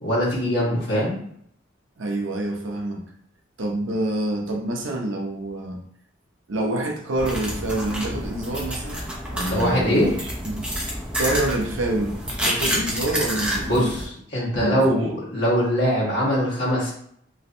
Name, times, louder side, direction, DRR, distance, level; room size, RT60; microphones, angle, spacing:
voice 1, 0.0-1.2 9.5-10.1 13.6-14.0 14.3-16.9, equal, 65° left, -6 dB, 1.3 m, -22 dB
voice 2, 2.0-3.0 3.6-5.8 6.5-10.1 10.4-10.7 11.2-13.9 14.6-15.0, right 1 dB, 90° right, 1 dB, 0.6 m, -27 dB
sound 1, 7.2-14.0, equal, 5° right, 0.6 m, -28 dB
3.1 x 2.6 x 2.6 m, 0.66 s
head